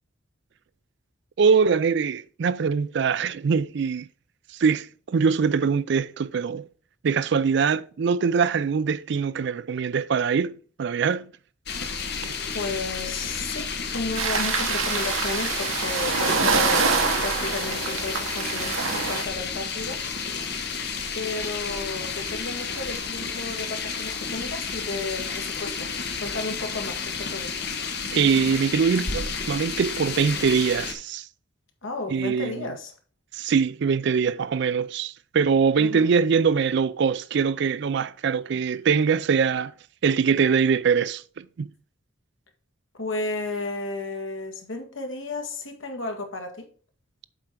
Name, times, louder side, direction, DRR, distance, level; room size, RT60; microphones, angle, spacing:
voice 1, 1.4-4.1 4.6-6.7 7.0-11.3 28.1-31.3 32.1-32.7 33.3-39.7 40.0-41.7, right 6 dB, 60° right, 0.4 m, -23 dB
sound 1, 11.7-30.9, left 5 dB, 55° left, 1.2 m, -31 dB
voice 2, 12.5-20.0 21.1-25.9 26.2-27.8 31.8-32.9 35.8-36.1 42.9-46.7, left 3 dB, 75° left, 1.7 m, -33 dB
sound 2, 14.1-19.2, right 5 dB, 85° right, 1.2 m, -25 dB
7.5 x 4.5 x 5.2 m
head